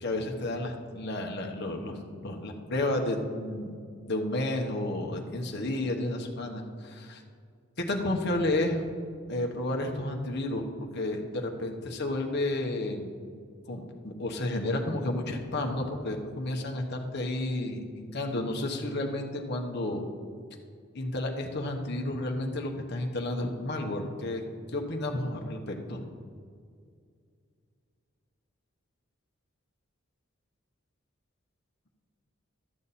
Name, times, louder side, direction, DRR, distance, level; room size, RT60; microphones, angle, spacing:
voice 1, 0.0-3.7 4.1-7.2 7.9-8.9 9.3-10.7 10.9-13.1 13.7-20.0 20.9-24.4 24.7-26.0, left 1 dB, 55° left, 2 dB, 1.1 m, -31 dB
12.5 x 7.2 x 4.2 m, 2.2 s
head